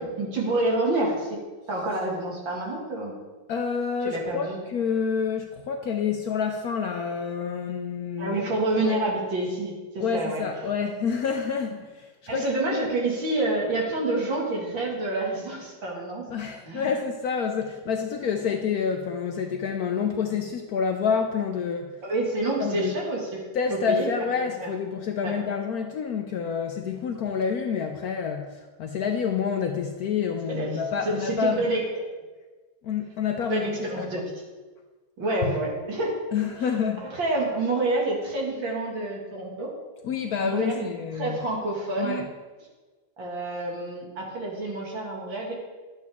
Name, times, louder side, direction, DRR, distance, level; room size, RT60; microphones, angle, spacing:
voice 1, 0.0-1.4 1.7-3.1 4.0-4.6 8.2-10.4 12.3-16.2 16.6-16.9 22.0-23.4 23.9-24.1 24.6-24.7 25.2-25.4 30.5-31.8 33.5-34.3 35.2-36.2 37.0-39.7 40.4-40.9 41.1-42.3 43.2-45.5, right 2 dB, 75° right, -2 dB, 2.8 m, -28 dB
voice 2, 3.5-8.4 8.8-9.1 10.0-12.6 16.3-21.9 22.6-22.9 23.5-31.7 32.8-34.2 35.4-35.5 36.3-37.1 40.0-41.4 42.0-42.3, left 6 dB, 70° left, 4 dB, 0.9 m, -28 dB
11.0 x 8.4 x 3.6 m, 1.3 s
omnidirectional pair, 2.1 m